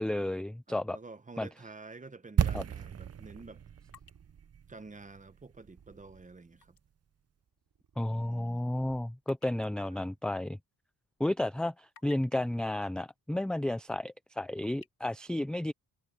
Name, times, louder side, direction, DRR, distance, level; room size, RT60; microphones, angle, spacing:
voice 1, 0.0-1.0 1.4-1.5 2.5-2.6 8.0-10.6 11.2-15.7, left 1 dB, ahead, 0.3 m, -32 dB
voice 2, 0.7-3.6 4.7-6.8 8.1-8.7 9.8-10.1, right 3 dB, 20° right, 1.0 m, -49 dB
sound 1, 2.4-6.3 6.6-6.7, right 8 dB, 40° right, 0.7 m, -34 dB
Purr, 3.7-4.8 5.4-6.5 7.2-9.3, right 7 dB, 60° right, 5.2 m, -63 dB
sound 2, 3.9-6.9 7.3-7.4 8.0-11.1 11.5-12.5 13.5-13.6 14.0-14.9, left 7 dB, 55° left, 3.6 m, -60 dB
cardioid pair, 105°, 40 cm